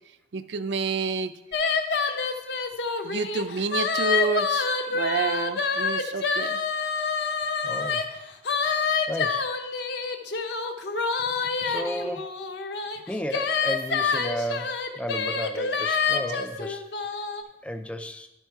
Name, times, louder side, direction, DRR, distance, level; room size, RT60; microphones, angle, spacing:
voice 1, 0.3-1.3 3.0-6.6, right 4 dB, 75° right, 12 dB, 0.4 m, -29 dB
sound 1, 1.5-8.0 8.4-17.4, left 5 dB, 70° left, 0.7 m, -27 dB
voice 2, 7.6-8.0 9.1-9.5 11.6-12.3 13.1-16.9 17.6-18.3, equal, 5° left, 7 dB, 0.4 m, -33 dB
11.5 x 4.5 x 4.5 m, 0.90 s
head